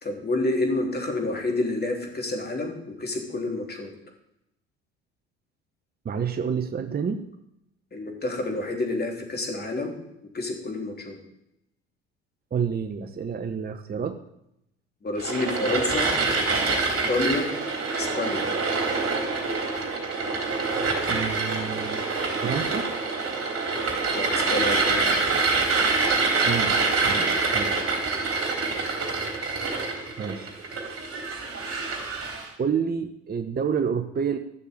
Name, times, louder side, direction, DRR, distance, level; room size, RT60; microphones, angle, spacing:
voice 1, 0.0-3.9 7.9-9.9 10.3-11.2 15.0-16.1 17.1-17.5 18.0-18.5 24.1-25.2, left 2 dB, 30° left, 2 dB, 3.5 m, -28 dB
voice 2, 6.0-7.3 12.5-14.2 21.1-22.0 22.4-22.9 26.2-27.8 30.2-30.7 32.6-34.4, right 6 dB, 30° right, 8 dB, 1.0 m, -29 dB
sound 1, 15.2-32.5, right 3 dB, 45° right, 3.7 m, -26 dB
12.5 x 6.8 x 8.5 m, 0.82 s
hypercardioid pair, 65°, 31 cm